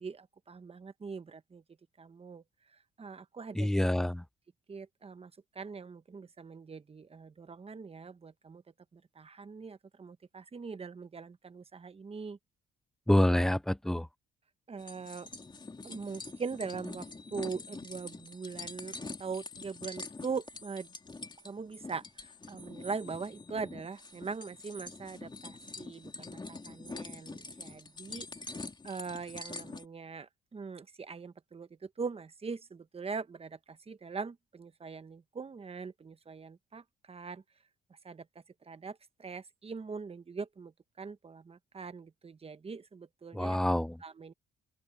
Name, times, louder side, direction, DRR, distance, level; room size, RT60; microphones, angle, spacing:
voice 1, 0.0-1.6 2.0-3.7 4.7-8.6 8.9-12.4 14.7-15.3 15.8-20.9 21.4-28.5 28.8-37.4 37.9-43.6 44.0-44.3, right 5 dB, 30° right, 1.1 m, -42 dB
voice 2, 3.6-4.2 13.1-14.1 43.3-44.0, left 1 dB, ahead, 0.3 m, -27 dB
sound 1, 14.8-29.8, left 3 dB, 20° left, 3.4 m, -45 dB
open air
cardioid pair, 90°, 20 cm